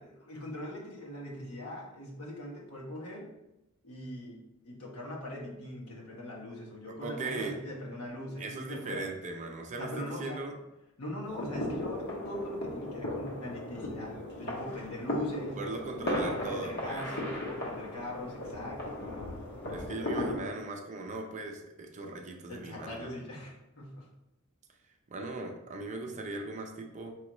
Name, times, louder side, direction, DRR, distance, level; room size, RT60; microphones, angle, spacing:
voice 1, 0.0-3.3 3.8-9.1 9.8-10.4 11.0-15.6 16.0-19.4 22.5-24.1, left 1 dB, 80° left, -3 dB, 1.1 m, -41 dB
voice 2, 6.9-7.6 8.4-10.5 15.6-17.0 19.7-23.1 25.1-27.1, right 3 dB, 35° right, 2 dB, 0.5 m, -39 dB
sound 1, 11.2-20.4, left 1 dB, 55° left, 1.1 m, -36 dB
5.0 x 3.1 x 3.0 m, 0.91 s
head